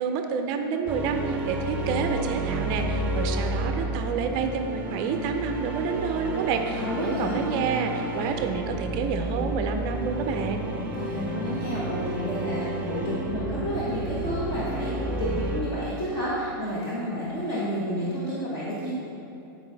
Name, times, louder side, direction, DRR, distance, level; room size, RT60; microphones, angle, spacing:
voice 1, 0.0-10.8, right 5 dB, 35° right, 6 dB, 0.5 m, -29 dB
sound 1, 0.9-15.6, right 1 dB, 15° right, 0.8 m, -31 dB
voice 2, 6.7-7.5 10.7-18.9, equal, 30° left, -8 dB, 1.2 m, -30 dB
9.5 x 4.7 x 3.9 m, 2.8 s
supercardioid pair, 150°, 12 cm